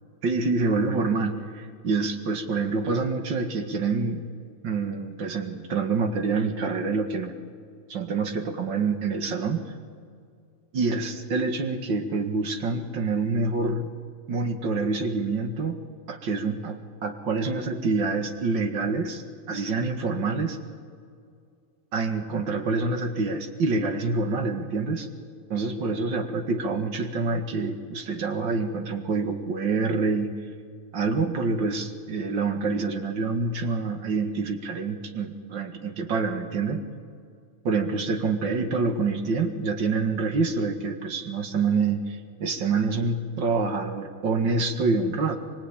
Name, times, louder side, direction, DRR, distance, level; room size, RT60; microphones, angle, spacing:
voice 1, 0.2-4.3 4.6-7.4 7.9-9.7 10.7-13.9 14.3-15.8 16.1-20.6 21.9-25.1 25.5-30.3 30.9-36.8 37.6-45.4, right 4 dB, 40° right, 6 dB, 2.2 m, -26 dB
25.0 x 23.5 x 8.9 m, 2.3 s
omnidirectional pair, 3.4 m